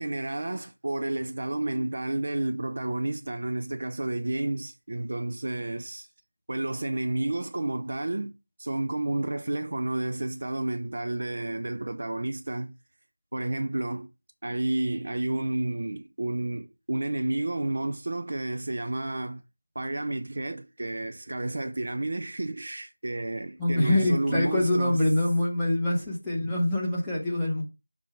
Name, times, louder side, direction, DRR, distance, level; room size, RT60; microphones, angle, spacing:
voice 1, 0.0-6.1 6.5-8.3 8.6-12.7 13.3-14.1 14.4-19.4 19.7-25.0, right 2 dB, 45° right, 0.5 m, -31 dB
voice 2, 23.6-27.6, left 1 dB, ahead, 1.0 m, -25 dB
6.4 x 3.6 x 4.5 m
figure-of-eight pair, 175°, 0 cm